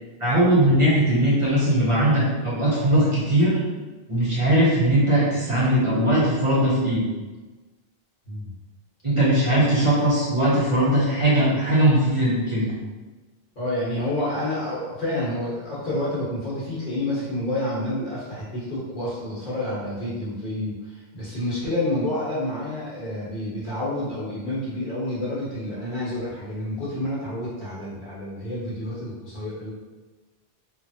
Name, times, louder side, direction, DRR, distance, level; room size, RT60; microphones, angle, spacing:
voice 1, 0.2-3.6 4.1-7.0 9.0-12.7, right 1 dB, 35° right, -8 dB, 0.8 m, -20 dB
voice 2, 13.5-29.7, left 1 dB, 55° left, -8 dB, 1.2 m, -29 dB
3.1 x 2.4 x 2.7 m, 1.2 s
omnidirectional pair, 1.0 m